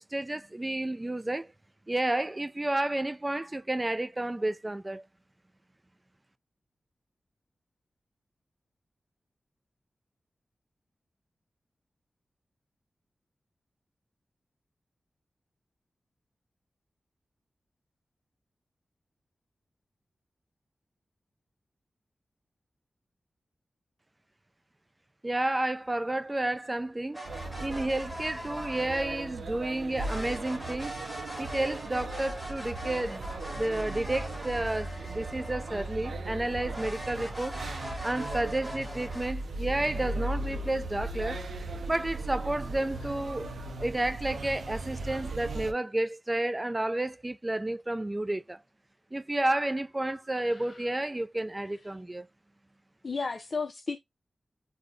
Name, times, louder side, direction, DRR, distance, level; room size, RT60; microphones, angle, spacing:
voice 1, 0.1-1.5 1.9-5.0 25.2-27.2 27.6-30.9 31.4-37.6 38.0-41.4 41.9-43.5 43.8-48.6 49.1-52.3, right 1 dB, 20° right, 0.3 m, -31 dB
sound 1, 27.1-29.4 29.9-36.1 36.7-39.3, equal, 5° right, 1.2 m, -41 dB
sound 2, 27.2-45.7, right 2 dB, 85° right, 0.4 m, -38 dB
voice 2, 50.4-50.9 53.0-54.0, left 4 dB, 55° left, 0.4 m, -35 dB
2.4 x 2.0 x 3.6 m
cardioid pair, 65°, 0 cm